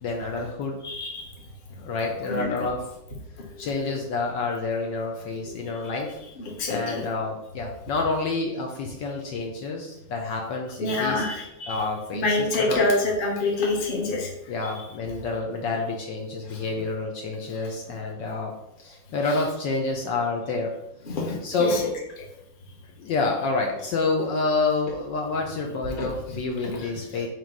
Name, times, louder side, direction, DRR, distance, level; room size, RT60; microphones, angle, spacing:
voice 1, 0.0-0.8 1.8-2.9 3.6-6.2 6.7-11.2 11.7-12.8 14.5-18.5 18.8-20.7 21.4-21.8 23.0-27.3, left 3 dB, 70° left, 0 dB, 1.3 m, -28 dB
voice 2, 0.8-1.3 2.3-2.6 3.4-4.0 5.8-7.1 10.8-14.9 16.4-16.8 17.5-17.7 19.2-19.5 21.1-21.9 22.2-22.3 26.0-27.3, left 2 dB, 30° left, -1 dB, 1.1 m, -29 dB
6.0 x 3.1 x 5.2 m, 0.88 s
omnidirectional pair, 2.3 m